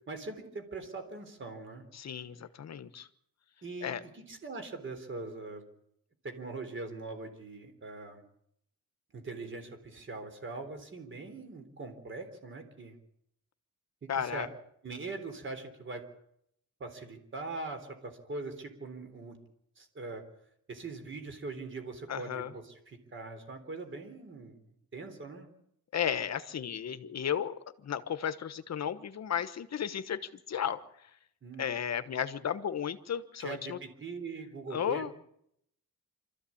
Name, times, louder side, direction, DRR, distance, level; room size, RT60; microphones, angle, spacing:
voice 1, 0.1-1.8 3.6-5.6 6.2-8.2 9.1-13.0 14.0-14.5 14.8-16.1 16.8-19.4 19.8-20.2 20.7-24.6 24.9-25.5 31.4-31.7 33.4-35.1, right 3 dB, 35° right, 6 dB, 3.6 m, -42 dB
voice 2, 1.9-3.1 3.8-4.0 14.1-14.5 22.1-22.5 25.9-27.5 27.8-30.2 30.5-30.8 31.6-33.8 34.7-35.2, left 8 dB, 45° left, 12 dB, 1.2 m, -34 dB
25.5 x 14.0 x 8.6 m, 0.74 s
wide cardioid pair, 180°, 35 cm